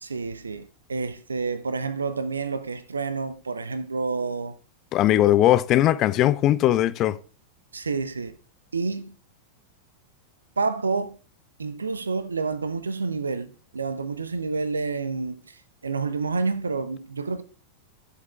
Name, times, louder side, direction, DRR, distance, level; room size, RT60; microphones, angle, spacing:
voice 1, 0.0-4.5 7.7-8.4 8.7-9.2 10.6-11.2 11.6-17.4, right 4 dB, 75° right, 0.6 m, -29 dB
voice 2, 4.9-7.2, left 13 dB, 35° left, 0.4 m, -19 dB
16.0 x 6.6 x 2.3 m
figure-of-eight pair, 90°, 0 cm